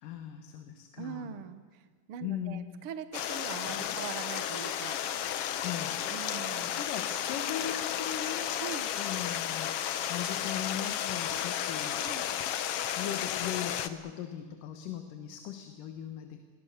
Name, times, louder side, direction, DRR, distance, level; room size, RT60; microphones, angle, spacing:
voice 1, 0.0-1.4 2.2-2.7 3.7-4.0 5.6-6.0 6.8-8.5 9.0-9.8 10.1-12.1 13.0-16.4, left 10 dB, 90° left, 6 dB, 2.9 m, -39 dB
voice 2, 1.0-1.8 2.1-5.0 6.1-6.8 8.6-8.9 12.1-12.3, right 8 dB, 60° right, 10 dB, 1.6 m, -42 dB
Stream, 3.1-13.9, left 10 dB, 70° left, 1.5 m, -33 dB
29.5 x 22.5 x 6.6 m, 1.5 s
omnidirectional pair, 3.7 m